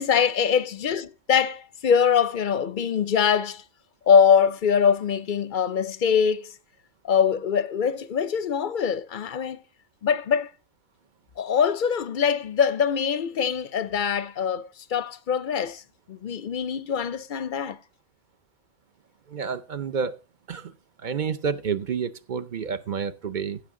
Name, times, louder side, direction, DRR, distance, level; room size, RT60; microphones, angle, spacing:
voice 1, 0.0-3.6 4.1-6.5 7.0-9.6 10.0-10.5 11.4-15.8 16.1-17.8, left 7 dB, 55° left, 0.6 m, -23 dB
voice 2, 19.3-20.2 20.5-23.6, right 6 dB, 50° right, 0.7 m, -30 dB
15.5 x 6.1 x 3.7 m
omnidirectional pair, 1.3 m